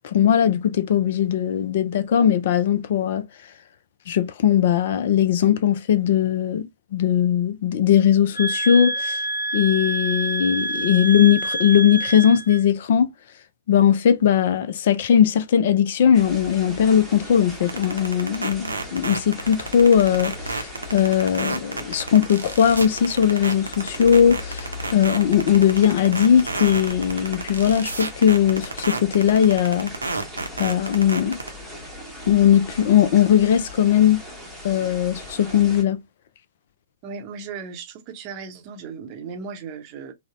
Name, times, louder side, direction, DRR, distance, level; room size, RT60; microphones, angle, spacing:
voice 1, 0.0-3.2 4.1-9.2 9.5-13.1 13.7-29.9 30.6-31.4 32.3-34.2 34.6-36.0, left 9 dB, 45° left, 0.3 m, -19 dB
sound 1, 8.3-12.6, right 1 dB, 65° left, 1.1 m, -27 dB
sound 2, 16.1-35.8, left 1 dB, ahead, 0.9 m, -38 dB
sound 3, 17.7-31.5, right 3 dB, 75° right, 0.6 m, -29 dB
voice 2, 37.0-40.1, right 5 dB, 30° right, 0.7 m, -36 dB
3.7 x 2.0 x 2.4 m
figure-of-eight pair, 115°, 0 cm